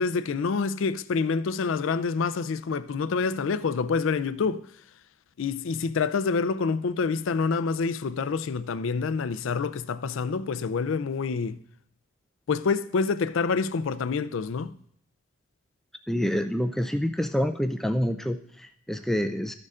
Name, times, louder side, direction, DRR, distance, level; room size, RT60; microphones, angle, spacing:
voice 1, 0.0-4.6 5.4-11.6 12.5-14.8, left 5 dB, 85° left, 0.4 m, -27 dB
voice 2, 16.1-19.5, equal, ahead, 0.3 m, -27 dB
14.0 x 6.6 x 2.4 m
head